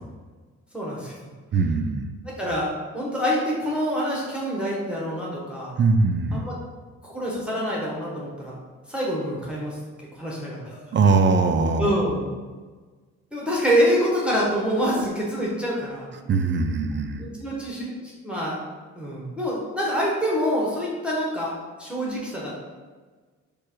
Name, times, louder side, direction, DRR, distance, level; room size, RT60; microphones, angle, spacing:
voice 1, 0.7-1.2 2.2-5.7 6.3-6.6 7.0-8.6 8.9-9.8 10.2-10.9 11.8-12.3 13.3-16.1 17.2-18.6 19.0-21.5 21.8-22.5, equal, 5° right, -5 dB, 1.1 m, -26 dB
voice 2, 1.5-2.1 5.8-6.4 10.9-11.9 16.3-17.3, right 4 dB, 40° right, 6 dB, 0.5 m, -21 dB
4.7 x 2.4 x 4.4 m, 1.4 s
cardioid pair, 90°, 30 cm